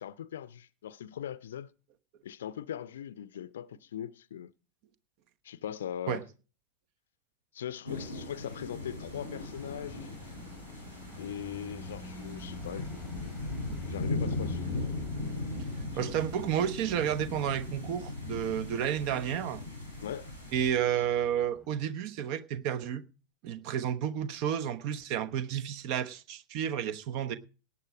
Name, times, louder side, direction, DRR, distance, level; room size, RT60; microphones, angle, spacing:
voice 1, 0.0-1.7 2.2-4.5 5.4-6.2 7.5-10.1 11.2-13.4 13.7-14.7 16.0-16.2 20.0-20.3, left 10 dB, 60° left, 0.6 m, -40 dB
sound 1, 7.9-20.7, left 2 dB, 85° right, 7.2 m, -38 dB
sound 2, 9.1-21.8, left 1 dB, 5° left, 1.3 m, -48 dB
voice 2, 16.0-19.6 20.5-23.0 23.4-27.4, right 9 dB, 45° right, 1.0 m, -31 dB
18.0 x 8.6 x 4.9 m
figure-of-eight pair, 90°, 0 cm